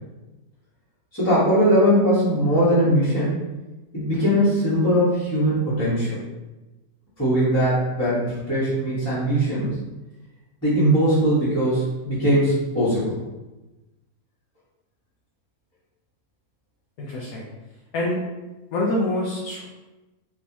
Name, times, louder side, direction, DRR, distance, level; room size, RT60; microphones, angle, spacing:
voice 1, 1.1-3.3 3.9-6.2 7.2-9.8 10.6-13.2, equal, 10° left, -12 dB, 1.2 m, -20 dB
voice 2, 17.0-17.4 17.9-18.2 18.7-19.6, left 1 dB, 75° left, -4 dB, 1.1 m, -25 dB
3.4 x 3.1 x 2.8 m, 1.1 s
omnidirectional pair, 1.5 m